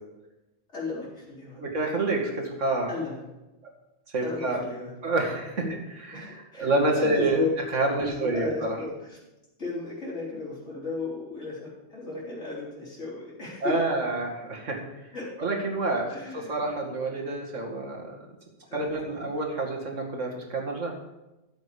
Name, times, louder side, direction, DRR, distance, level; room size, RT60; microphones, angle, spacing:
voice 1, 0.7-1.6 2.9-3.2 4.2-4.9 5.6-5.8 6.1-6.7 7.0-7.5 8.0-9.2 9.6-13.8 15.1-15.3 16.1-16.6 18.7-19.3, left 3 dB, 70° left, -6 dB, 4.4 m, -35 dB
voice 2, 1.6-2.9 4.1-4.6 5.0-5.6 5.9-7.4 7.7-8.8 13.6-14.8 15.4-16.0 16.3-18.2 18.7-20.9, right 2 dB, 85° right, 0 dB, 2.5 m, -28 dB
13.0 x 8.1 x 5.1 m, 1.0 s
omnidirectional pair, 1.2 m